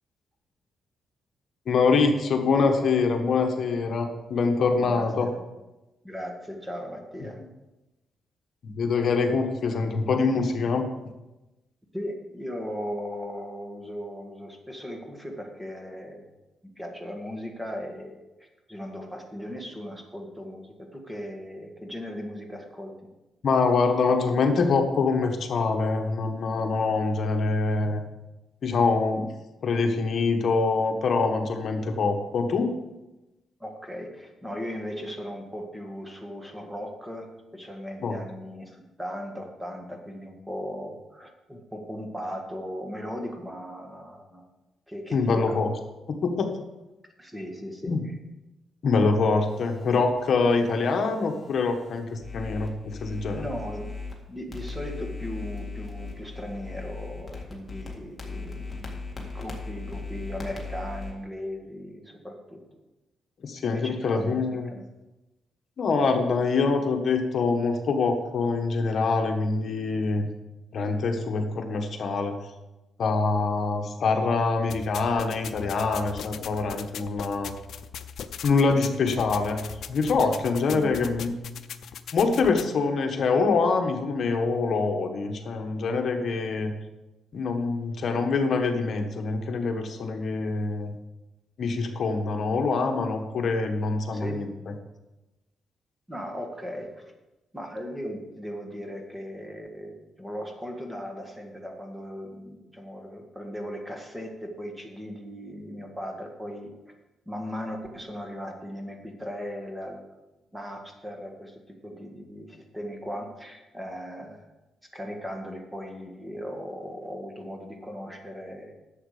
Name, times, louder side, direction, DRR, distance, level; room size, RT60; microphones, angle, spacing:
voice 1, 1.7-5.3 8.6-10.9 23.4-28.0 28.6-29.3 29.6-32.7 38.0-38.1 45.1-45.7 46.1-46.5 47.9-48.0 48.8-53.4 63.4-64.7 65.8-70.3 70.7-72.4 73.0-77.5 78.4-81.3 82.1-86.7 87.3-90.9 91.6-94.5, left 4 dB, 55° left, 4 dB, 1.3 m, -25 dB
voice 2, 4.8-5.4 6.0-7.4 11.9-16.2 16.8-22.9 33.6-44.4 44.9-45.5 47.2-48.2 53.3-53.9 54.3-62.6 63.6-64.9 80.6-81.0 94.1-94.4 96.1-97.1 97.5-106.7 107.3-110.0 110.5-114.5 114.9-118.7, equal, 10° right, 2 dB, 1.8 m, -38 dB
sound 1, 49.5-54.2 54.5-61.1, left 3 dB, 20° left, 2.0 m, -39 dB
sound 2, 74.7-82.7, left 8 dB, 70° left, 0.6 m, -39 dB
11.0 x 7.5 x 5.0 m, 1.0 s
cardioid pair, 120°, 0 cm